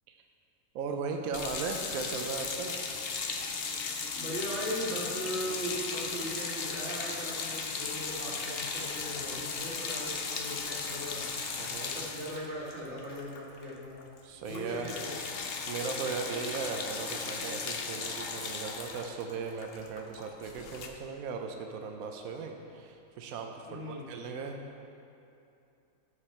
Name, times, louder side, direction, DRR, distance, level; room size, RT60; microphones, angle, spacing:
voice 1, 0.7-3.0 11.5-11.9 14.2-14.9 15.7-24.7, right 5 dB, 75° right, 3 dB, 1.1 m, -37 dB
sound 1, 1.3-13.7 14.0-14.2 14.4-20.9, left 5 dB, 55° left, 0.7 m, -36 dB
voice 2, 4.1-11.3 11.8-14.0 14.5-15.2 23.7-24.1, equal, 50° right, -5 dB, 2.0 m, -38 dB
13.5 x 4.9 x 4.3 m, 2.7 s
omnidirectional pair, 1.5 m